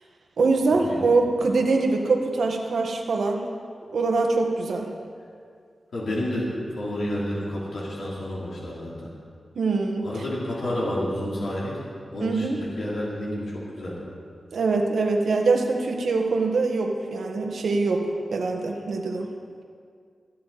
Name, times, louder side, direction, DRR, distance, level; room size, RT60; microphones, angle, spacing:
voice 1, 0.4-3.4 3.9-4.9 9.5-10.2 12.2-12.6 14.5-18.0 18.3-19.3, right 3 dB, 85° right, 2 dB, 1.6 m, -23 dB
voice 2, 5.9-6.5 6.8-8.9 10.0-11.8 12.1-13.9, left 1 dB, 80° left, -6 dB, 3.3 m, -30 dB
24.0 x 9.5 x 4.2 m, 2.2 s
wide cardioid pair, 130°, 0 cm